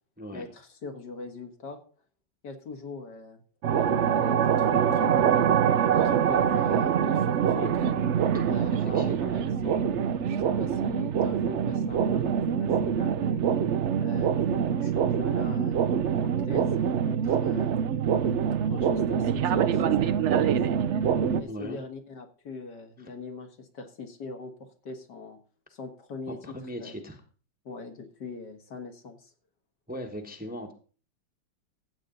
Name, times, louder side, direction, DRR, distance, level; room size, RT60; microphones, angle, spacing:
voice 1, 0.3-1.8 2.4-3.4 3.7-5.3 5.9-7.9 8.4-13.4 14.0-15.8 16.2-17.8 18.6-20.6 21.4-25.4 25.7-26.4 26.8-27.0 27.7-29.3, left 4 dB, 65° left, 4 dB, 2.1 m, -41 dB
sound 1, 3.6-21.4, right 8 dB, 80° right, 0.6 m, -25 dB
voice 2, 8.8-9.4 21.4-21.8 26.3-27.2 29.9-30.7, equal, 5° right, 3 dB, 1.0 m, -39 dB
15.0 x 8.2 x 3.9 m, 0.40 s
omnidirectional pair, 2.0 m